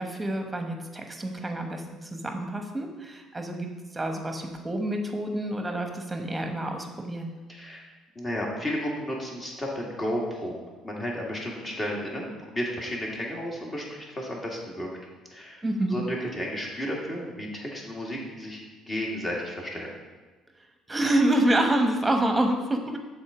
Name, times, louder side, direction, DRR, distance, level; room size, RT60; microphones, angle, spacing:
voice 1, 0.0-7.3 15.6-16.0 20.9-23.0, right 1 dB, 15° right, 4 dB, 1.1 m, -27 dB
voice 2, 7.5-7.9 8.2-14.9 15.3-15.6 15.9-19.9, equal, 30° left, -2 dB, 2.0 m, -33 dB
7.0 x 4.0 x 4.9 m, 1.3 s
supercardioid pair, 75°, 0 cm